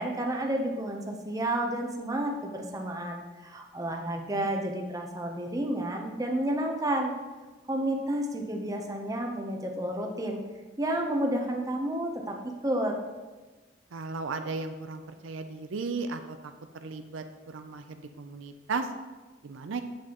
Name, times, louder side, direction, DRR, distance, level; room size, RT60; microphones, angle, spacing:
voice 1, 0.0-7.1 7.7-10.4 10.8-13.0, right 1 dB, 20° right, 2 dB, 0.8 m, -31 dB
voice 2, 13.9-18.9 19.4-19.8, right 4 dB, 75° right, 7 dB, 0.5 m, -36 dB
8.6 x 7.5 x 3.0 m, 1.3 s
head